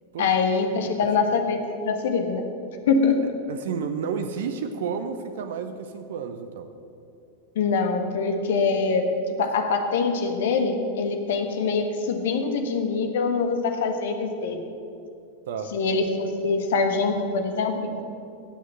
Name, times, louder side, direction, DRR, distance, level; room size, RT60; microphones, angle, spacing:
voice 1, 0.2-1.6 1.8-2.4 2.9-3.3 7.5-9.1 9.4-14.6 15.7-18.0, left 4 dB, 55° left, 6 dB, 1.4 m, -24 dB
voice 2, 3.5-6.7 15.5-15.7, right 6 dB, 55° right, 8 dB, 0.8 m, -31 dB
16.5 x 6.4 x 7.4 m, 2.6 s
figure-of-eight pair, 90°, 0 cm